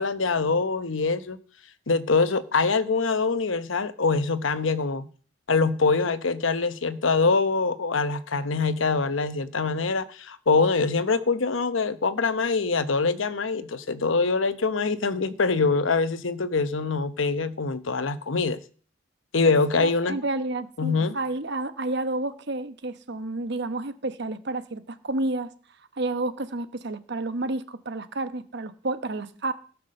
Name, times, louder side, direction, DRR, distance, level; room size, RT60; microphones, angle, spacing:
voice 1, 0.0-1.4 1.9-5.1 5.5-18.6 19.3-20.2 20.8-21.2, left 4 dB, 85° left, 0.9 m, -24 dB
voice 2, 19.7-25.5 26.0-29.5, right 2 dB, 60° right, 1.1 m, -30 dB
17.5 x 6.0 x 6.5 m
head